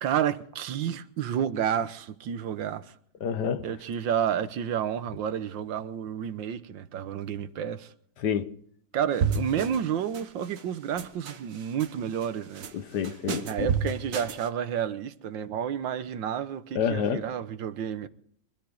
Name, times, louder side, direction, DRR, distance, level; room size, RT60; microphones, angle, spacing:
voice 1, 0.0-2.9 3.6-7.9 8.9-12.7 13.4-18.1, right 9 dB, 90° right, 1.7 m, -30 dB
voice 2, 3.2-3.7 8.2-8.5 12.7-13.7 16.7-17.3, left 7 dB, 70° left, 1.5 m, -28 dB
sound 1, 9.2-9.9 10.1-10.6 11.0-11.9 12.2-12.7 13.0-14.5, right 6 dB, 50° right, 1.4 m, -30 dB
24.5 x 13.5 x 3.9 m
omnidirectional pair, 2.0 m